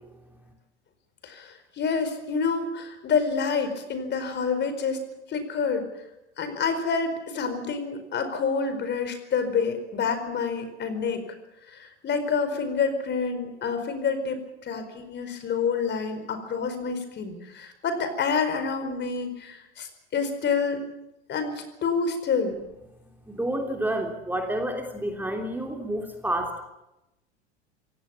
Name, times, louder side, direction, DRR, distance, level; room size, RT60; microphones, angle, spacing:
voice 1, 1.2-5.9 6.4-11.2 11.7-20.8 21.3-22.6, left 5 dB, 30° left, 9 dB, 4.7 m, -28 dB
voice 2, 23.3-26.6, right 1 dB, 5° right, 2 dB, 3.2 m, -29 dB
26.5 x 18.0 x 7.2 m, 0.93 s
figure-of-eight pair, 85°, 34 cm